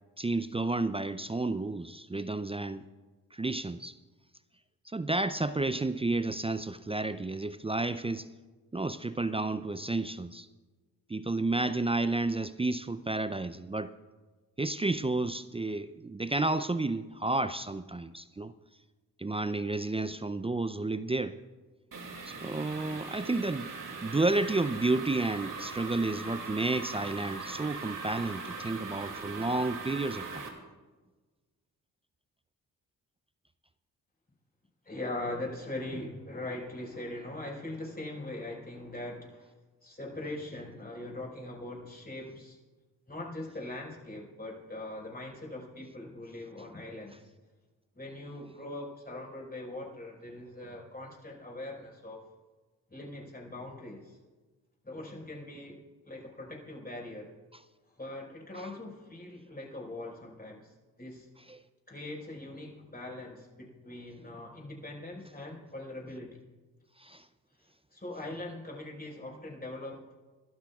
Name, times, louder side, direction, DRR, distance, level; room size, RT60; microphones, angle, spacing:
voice 1, 0.2-2.8 3.3-4.0 4.9-8.3 8.7-10.5 11.1-13.9 14.6-18.5 19.2-21.4 22.2-23.7 24.0-30.4 61.5-61.6 67.0-67.2, right 2 dB, 15° right, 12 dB, 0.5 m, -31 dB
sound 1, 21.9-30.5, right 4 dB, 50° right, 2.6 m, -40 dB
voice 2, 34.8-39.5 39.8-42.6 43.1-47.3 47.9-52.3 52.9-54.2 54.8-57.3 58.0-61.3 61.9-66.4 67.9-70.2, left 2 dB, 20° left, -1 dB, 5.1 m, -41 dB
28.5 x 12.5 x 2.4 m, 1.3 s
hypercardioid pair, 40°, 41 cm